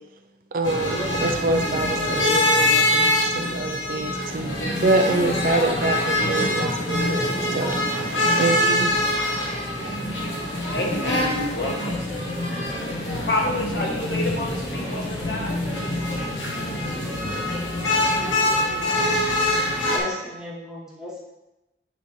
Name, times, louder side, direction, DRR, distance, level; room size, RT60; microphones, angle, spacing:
voice 1, 0.5-7.8 8.1-8.9 9.8-10.1, right 2 dB, 50° right, 6 dB, 0.4 m, -26 dB
sound 1, 0.6-20.0, left 1 dB, 85° left, 1.2 m, -24 dB
voice 2, 10.7-12.0 13.2-15.5, left 1 dB, 65° left, -1 dB, 1.2 m, -28 dB
voice 3, 19.8-21.2, left 2 dB, 5° right, -4 dB, 1.0 m, -35 dB
9.3 x 3.4 x 3.1 m, 0.98 s
head